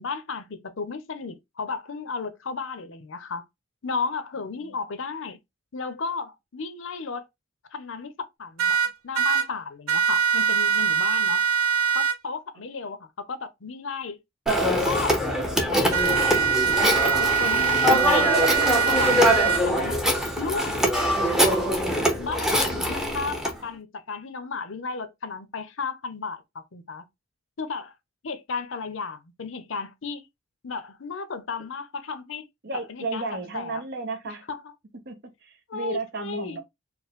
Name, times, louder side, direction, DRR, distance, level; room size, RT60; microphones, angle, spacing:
voice 1, 0.0-3.4 3.8-5.4 5.7-7.3 7.7-11.4 11.9-14.2 14.6-15.3 15.7-16.5 16.8-18.4 18.9-20.0 20.4-20.8 22.2-27.0 27.6-27.9 28.2-30.3 30.6-32.5 32.7-33.8 34.3-34.7 35.7-36.6, left 4 dB, 65° left, 0.7 m, -34 dB
sound 1, 8.6-9.5 9.9-12.2 15.9-19.6, right 7 dB, 90° right, 0.7 m, -23 dB
Telephone, 14.5-23.5, equal, ahead, 0.7 m, -23 dB
voice 2, 22.5-22.8 32.6-34.5 35.1-36.6, right 3 dB, 50° right, 0.8 m, -33 dB
4.4 x 2.1 x 3.6 m
head